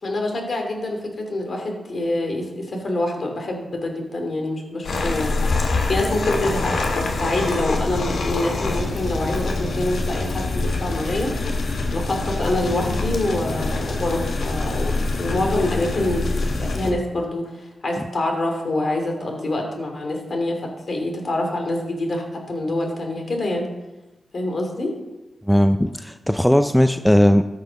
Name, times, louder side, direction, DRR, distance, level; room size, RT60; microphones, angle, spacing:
voice 1, 0.0-5.4 5.9-11.3 11.9-23.7 24.3-24.9, left 1 dB, 55° left, 2 dB, 2.8 m, -26 dB
sound 1, 4.8-16.9, left 3 dB, 75° left, 1.5 m, -25 dB
voice 2, 25.5-27.5, equal, 5° left, 8 dB, 0.5 m, -17 dB
13.0 x 5.5 x 5.3 m, 1.0 s
cardioid pair, 50°, 0 cm